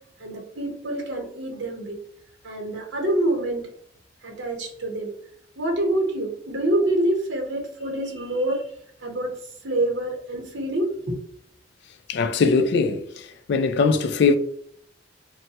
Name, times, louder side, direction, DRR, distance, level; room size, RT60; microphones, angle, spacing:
voice 1, 0.2-2.0 2.4-3.7 4.2-5.1 5.6-8.7 9.0-9.4 9.6-11.2, right 1 dB, 80° right, 0.9 m, -26 dB
voice 2, 12.1-13.1 13.5-14.4, left 4 dB, 65° left, 0.4 m, -20 dB
3.1 x 2.2 x 2.7 m
head